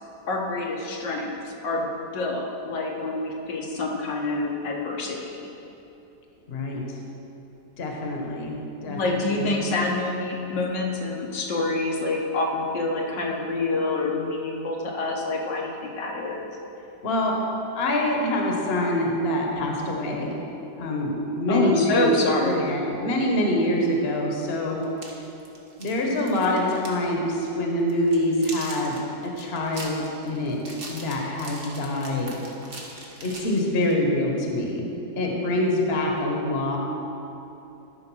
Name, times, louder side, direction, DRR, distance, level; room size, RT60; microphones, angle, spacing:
voice 1, 0.3-5.2 8.9-16.5 21.5-22.6, left 2 dB, 80° left, -1 dB, 1.8 m, -27 dB
voice 2, 6.5-6.8 7.8-9.5 17.0-17.4 17.7-20.3 20.8-22.1 22.4-24.8 25.8-29.0 29.2-32.4 33.2-34.9 35.1-36.8, left 1 dB, 40° left, 0 dB, 1.3 m, -25 dB
sound 1, 24.8-27.1 27.3-27.5 27.9-34.0, right 2 dB, 35° right, 1.3 m, -41 dB
12.5 x 4.9 x 6.2 m, 2.9 s
omnidirectional pair, 1.9 m